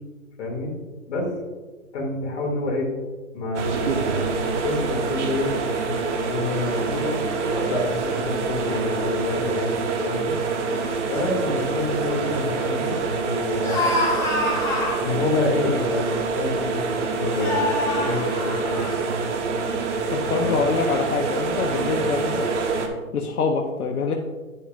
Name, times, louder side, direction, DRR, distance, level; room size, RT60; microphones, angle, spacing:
voice 1, 0.4-0.7 1.1-1.3 1.9-2.9 3.3-5.5 5.8-6.9 7.7-10.3 11.1-13.8 15.0-18.9 20.4-20.8, left 2 dB, 50° left, -1 dB, 2.5 m, -28 dB
sound 1, 3.5-22.9, right 4 dB, 55° right, 1.2 m, -26 dB
sound 2, 6.7-7.7 8.4-8.8 9.2-9.6 10.3-10.4 10.6-10.9 11.6-11.9 13.6-15.0 16.0-16.1 17.3-18.9, left 2 dB, 5° left, 2.3 m, -27 dB
voice 2, 20.1-22.5 23.1-24.1, left 5 dB, 90° left, 2 dB, 0.9 m, -25 dB
9.6 x 6.9 x 2.5 m, 1.3 s
hypercardioid pair, 145°, 43 cm